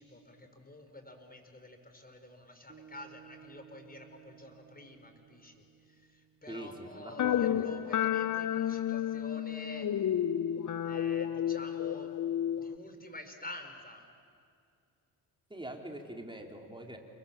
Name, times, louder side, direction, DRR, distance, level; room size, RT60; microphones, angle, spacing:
voice 1, 0.0-9.9 10.8-12.1 12.6-14.0, left 2 dB, 20° left, 6 dB, 5.2 m, -49 dB
sound 1, 2.7-7.1, right 8 dB, 25° right, 2.5 m, -57 dB
voice 2, 6.5-7.6 15.5-17.0, right 1 dB, 10° right, 1 dB, 4.4 m, -43 dB
sound 2, 7.2-12.8, left 10 dB, 40° left, 0.9 m, -31 dB
30.0 x 23.5 x 7.1 m, 2.3 s
hypercardioid pair, 45°, 50 cm